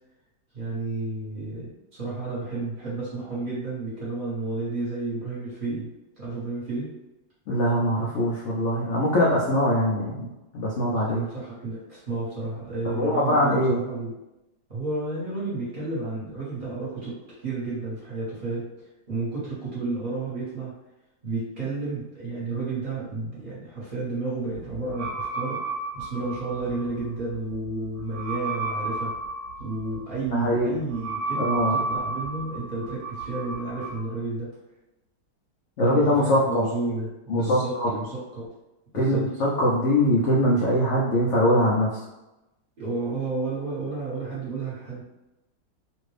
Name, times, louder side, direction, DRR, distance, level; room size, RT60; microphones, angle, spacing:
voice 1, 0.5-5.9 6.2-6.9 11.0-14.1 14.7-20.7 21.2-25.6 25.9-29.1 29.6-34.6 35.8-38.5 38.9-39.2 42.8-45.0, right 3 dB, 30° right, -9 dB, 1.3 m, -31 dB
voice 2, 7.5-10.3 10.5-11.2 12.8-13.8 30.3-30.8 31.4-31.8 35.8-36.6 37.3-37.9 38.9-42.0, equal, 70° left, -5 dB, 0.7 m, -22 dB
sound 1, 24.5-34.0, right 3 dB, 45° right, 0.7 m, -33 dB
3.0 x 2.6 x 3.2 m, 0.96 s
omnidirectional pair, 2.0 m